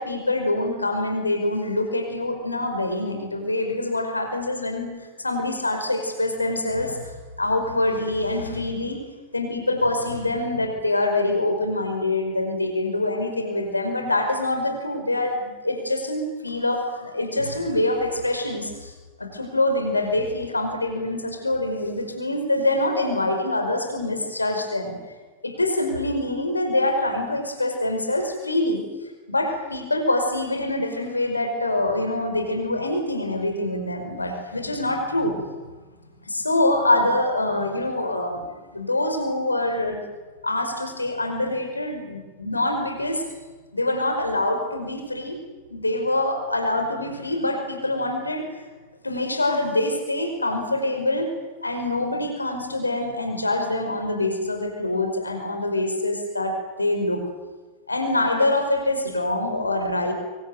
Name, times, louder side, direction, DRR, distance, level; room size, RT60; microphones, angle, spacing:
voice 1, 0.0-7.1 7.4-9.0 9.3-18.9 19.2-25.0 25.4-28.8 29.3-35.5 36.3-40.0 40.4-43.2 43.7-45.4 45.7-48.7 49.0-51.3 51.6-57.2 57.9-60.1, left 2 dB, 80° left, 5 dB, 5.3 m, -25 dB
25.0 x 23.5 x 9.3 m, 1.3 s
figure-of-eight pair, 90°, 0 cm